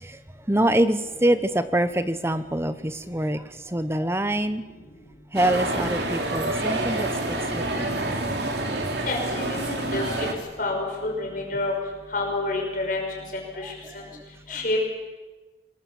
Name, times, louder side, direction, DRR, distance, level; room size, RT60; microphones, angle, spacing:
voice 1, 0.5-4.6 5.3-7.1 7.4-8.0 14.1-14.2, right 1 dB, 15° right, 12 dB, 0.9 m, -25 dB
sound 1, 5.3-10.3, right 2 dB, 70° right, 3.2 m, -27 dB
voice 2, 9.1-10.3 10.6-11.7 12.1-13.0 13.3-13.7 14.5-14.8, left 2 dB, 50° left, 0 dB, 5.6 m, -28 dB
26.0 x 21.5 x 7.2 m, 1.3 s
head